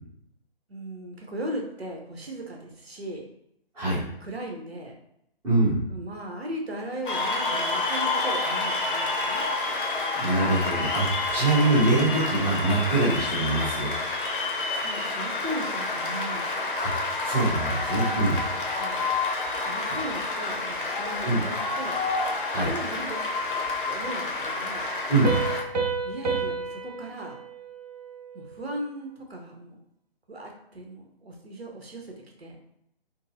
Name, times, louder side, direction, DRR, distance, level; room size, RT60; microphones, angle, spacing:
voice 1, 0.7-3.2 4.2-4.9 5.9-9.4 14.8-16.8 18.0-18.3 18.8-19.1 19.6-22.0 22.7-23.2 23.8-24.8 26.0-27.4 28.3-29.8 30.3-32.6, right 1 dB, 85° right, 1 dB, 0.9 m, -37 dB
voice 2, 5.4-5.9 10.2-13.9 16.8-16.9 17.2-18.4 21.2-21.4 22.5-22.7 25.1-25.4, right 2 dB, 10° right, -10 dB, 0.8 m, -24 dB
Cheering / Applause, 7.1-25.6, left 3 dB, 60° left, 0.7 m, -29 dB
Piano, 25.2-28.7, right 4 dB, 45° right, 0.5 m, -31 dB
3.8 x 2.1 x 2.6 m, 0.77 s
figure-of-eight pair, 140°, 30 cm